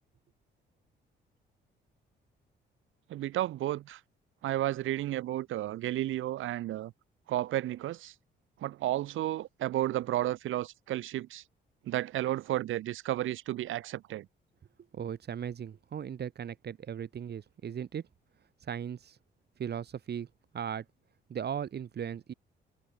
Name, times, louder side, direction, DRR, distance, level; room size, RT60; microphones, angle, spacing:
voice 1, 3.1-4.0 4.4-6.9 7.3-8.1 8.6-11.4 11.8-14.3, right 14 dB, 80° right, 1.9 m, -32 dB
voice 2, 14.9-18.0 18.6-19.2 19.6-20.3 20.5-20.8 21.3-22.3, right 8 dB, 55° right, 4.0 m, -37 dB
cardioid pair, 90°, 20 cm